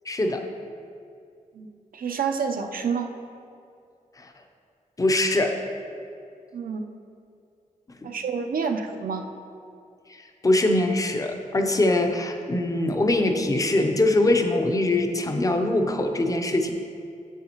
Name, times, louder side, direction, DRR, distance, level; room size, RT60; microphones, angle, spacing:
voice 1, 0.1-0.5 4.2-4.3 5.0-5.6 8.0-8.1 10.1-16.7, left 2 dB, 25° left, 5 dB, 0.6 m, -23 dB
voice 2, 1.9-3.1 6.5-6.8 8.0-9.3, right 6 dB, 85° right, 5 dB, 0.6 m, -28 dB
9.1 x 7.7 x 2.9 m, 2.4 s
wide cardioid pair, 155°, 14 cm